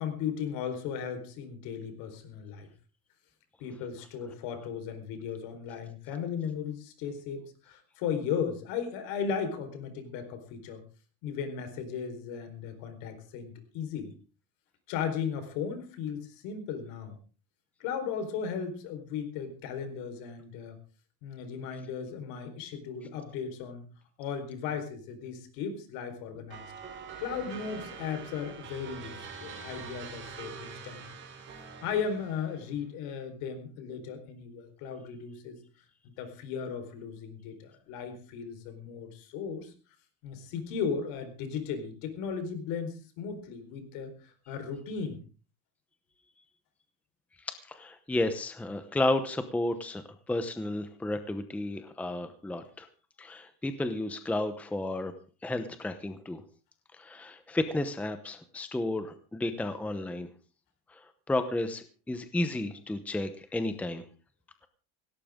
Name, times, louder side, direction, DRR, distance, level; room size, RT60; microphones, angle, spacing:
voice 1, 0.0-2.7 3.6-10.8 11.2-14.1 14.9-17.2 17.8-20.8 21.2-23.8 24.2-26.7 27.2-31.0 31.8-35.6 36.0-39.7 40.2-45.2, left 6 dB, 65° left, 8 dB, 4.5 m, -36 dB
sound 1, 26.5-32.7, right 6 dB, 30° right, 3.6 m, -44 dB
voice 2, 47.4-52.9 53.2-55.1 55.4-56.4 56.9-60.3 60.9-64.0, left 2 dB, 5° left, 9 dB, 0.8 m, -32 dB
17.5 x 17.5 x 3.7 m, 0.36 s
cardioid pair, 170°, 37 cm